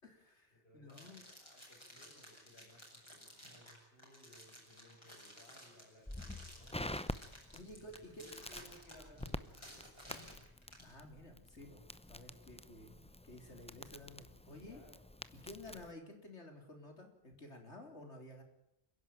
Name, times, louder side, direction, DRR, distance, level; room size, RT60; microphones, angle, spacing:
voice 1, 0.0-1.2 7.5-8.2 10.8-11.8 12.1-14.8 15.3-18.4, left 1 dB, 85° left, 4 dB, 3.9 m, -53 dB
voice 2, 0.6-7.0 7.4-10.2 12.2-12.4 14.6-15.0, left 1 dB, 65° left, -1 dB, 7.4 m, -63 dB
sound 1, 0.9-10.9, equal, 25° left, 6.7 m, -55 dB
Crackle, 6.1-15.9, left 1 dB, 10° left, 0.5 m, -48 dB
29.5 x 11.0 x 8.9 m, 0.81 s
omnidirectional pair, 1.1 m